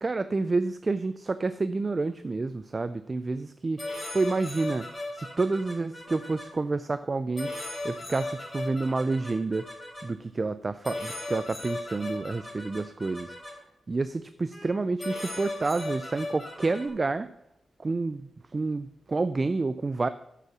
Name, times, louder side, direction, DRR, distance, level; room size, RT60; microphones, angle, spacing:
voice 1, 0.0-3.8 4.1-7.6 7.8-9.7 10.0-13.4 13.9-17.3 17.8-20.1, right 3 dB, 35° right, 13 dB, 0.4 m, -29 dB
sound 1, 3.8-6.4 7.4-10.0 10.8-13.5 14.5-14.7 15.0-16.9, left 2 dB, 20° left, 4.0 m, -37 dB
9.5 x 6.8 x 5.9 m, 0.82 s
cardioid pair, 85°, 0 cm